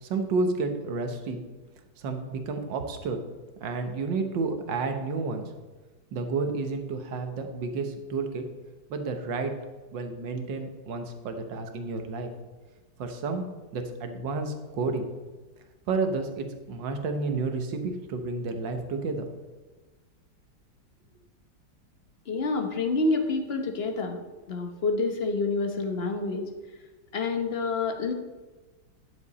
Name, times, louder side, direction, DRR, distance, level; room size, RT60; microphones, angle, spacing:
voice 1, 0.0-1.4 2.0-3.2 3.6-5.4 6.1-8.5 8.9-9.6 9.9-12.3 13.0-15.1 15.9-19.3, right 3 dB, 80° right, 6 dB, 1.7 m, -31 dB
voice 2, 22.3-24.2 24.5-26.5 27.1-28.1, left 3 dB, 45° left, 5 dB, 0.9 m, -28 dB
10.5 x 7.4 x 4.1 m, 1.3 s
omnidirectional pair, 2.0 m